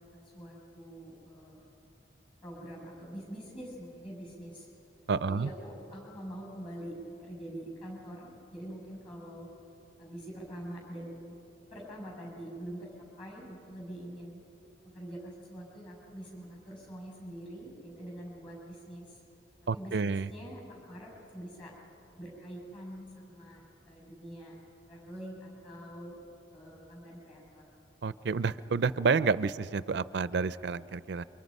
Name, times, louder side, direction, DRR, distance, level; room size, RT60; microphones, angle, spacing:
voice 1, 0.1-1.6 2.4-4.7 5.3-9.5 10.0-11.3 11.7-14.4 14.8-19.2 19.7-21.7 22.2-24.6 24.9-26.2 26.5-27.7, right 1 dB, 30° left, -1 dB, 7.2 m, -45 dB
voice 2, 5.1-5.5 19.7-20.3 28.0-31.2, right 5 dB, 65° right, 16 dB, 0.4 m, -29 dB
29.0 x 25.0 x 5.4 m, 3.0 s
head